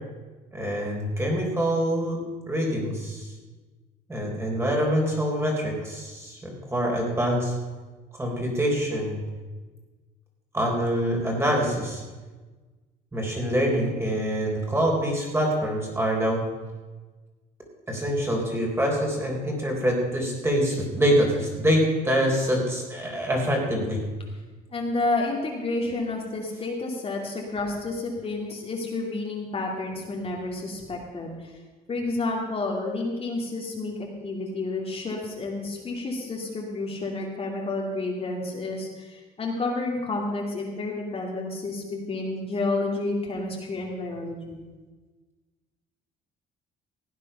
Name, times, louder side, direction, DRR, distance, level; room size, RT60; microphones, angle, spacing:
voice 1, 0.5-2.2 2.5-3.3 4.1-7.5 8.1-9.2 10.5-12.0 13.1-16.4 17.9-24.0, equal, 15° right, -1 dB, 3.6 m, -25 dB
voice 2, 24.7-31.6 31.9-33.9 34.2-44.6, left 2 dB, 35° left, -1 dB, 2.5 m, -30 dB
16.5 x 9.0 x 5.6 m, 1.3 s
cardioid pair, 110°, 17 cm